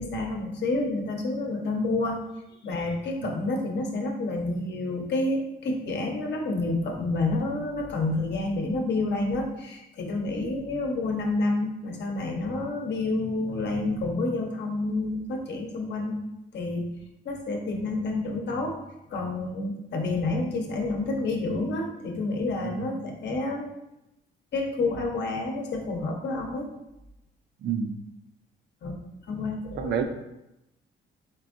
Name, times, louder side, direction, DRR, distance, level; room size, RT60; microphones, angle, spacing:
voice 1, 0.0-2.2 2.6-16.2 16.5-16.9 17.2-18.8 19.1-23.7 24.5-26.7 28.8-29.0 29.3-30.0, left 2 dB, 60° left, 2 dB, 0.9 m, -29 dB
voice 2, 27.6-27.9 29.8-30.0, right 7 dB, 60° right, 5 dB, 0.5 m, -30 dB
4.5 x 3.6 x 2.5 m, 0.90 s
cardioid pair, 90°, 20 cm